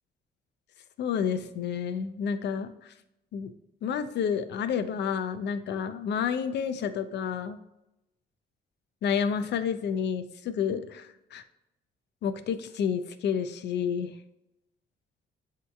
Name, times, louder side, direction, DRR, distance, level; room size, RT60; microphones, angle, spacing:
voice 1, 1.0-2.7 3.3-3.5 3.8-7.6 9.0-11.4 12.2-14.1, left 7 dB, 60° left, 10 dB, 0.4 m, -30 dB
7.4 x 2.8 x 2.3 m, 0.90 s
cardioid pair, 90°, 20 cm